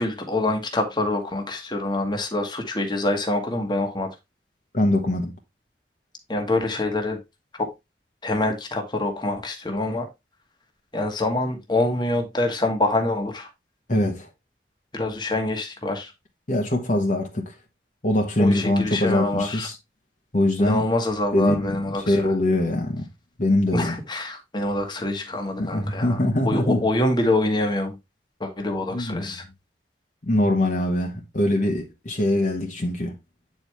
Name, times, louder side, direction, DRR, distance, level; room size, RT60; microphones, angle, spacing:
voice 1, 0.0-4.1 6.3-7.2 7.5-7.7 8.2-10.1 10.9-13.5 14.9-16.1 18.4-19.7 20.6-22.3 23.7-28.0 28.4-29.4, left 2 dB, 25° left, 1.4 m, -25 dB
voice 2, 4.7-5.3 13.9-14.3 16.5-17.4 18.0-19.7 20.3-20.8 21.3-21.8 22.1-23.1 23.4-24.0 25.6-26.8 28.9-29.3 30.2-33.1, left 1 dB, 45° left, 1.2 m, -22 dB
8.7 x 4.7 x 3.4 m
head